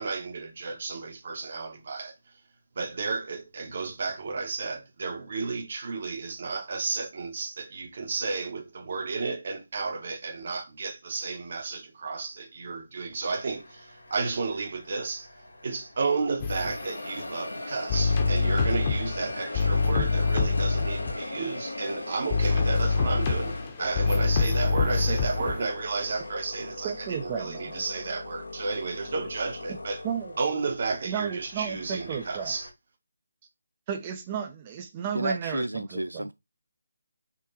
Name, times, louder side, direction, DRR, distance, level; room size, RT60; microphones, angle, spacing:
voice 1, 0.0-2.1 2.7-15.3 15.6-30.0 30.4-32.7, right 4 dB, 50° right, 1.6 m, -32 dB
sound 1, 13.3-16.1 16.5-32.7, left 2 dB, 75° left, 1.8 m, -40 dB
sound 2, 16.4-16.8 17.9-21.2 22.3-25.6, left 4 dB, 30° left, 1.3 m, -25 dB
voice 2, 26.8-27.8 30.0-30.3 31.1-32.6 33.9-36.3, right 7 dB, 25° right, 0.9 m, -33 dB
voice 3, 35.1-36.3, right 1 dB, 85° right, 0.4 m, -31 dB
6.1 x 3.6 x 4.3 m
figure-of-eight pair, 150°, 0 cm